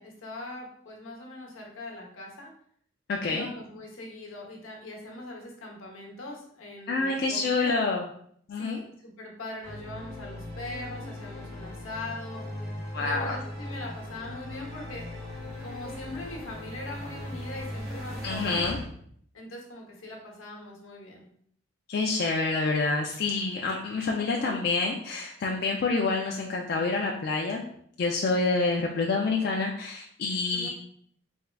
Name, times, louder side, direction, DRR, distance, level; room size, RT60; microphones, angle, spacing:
voice 1, 0.0-2.5 3.2-7.7 8.6-12.4 13.0-15.1 15.6-18.6 19.3-21.3 24.1-24.6 30.5-30.7, left 2 dB, 80° left, 0 dB, 0.9 m, -41 dB
voice 2, 3.1-3.5 6.9-8.1 8.5-8.8 12.9-13.4 18.2-18.8 21.9-27.6 28.0-30.7, left 3 dB, 50° left, 0 dB, 0.3 m, -27 dB
sound 1, 9.6-18.8, left 1 dB, 15° left, 1.4 m, -38 dB
3.5 x 3.2 x 2.2 m, 0.64 s
head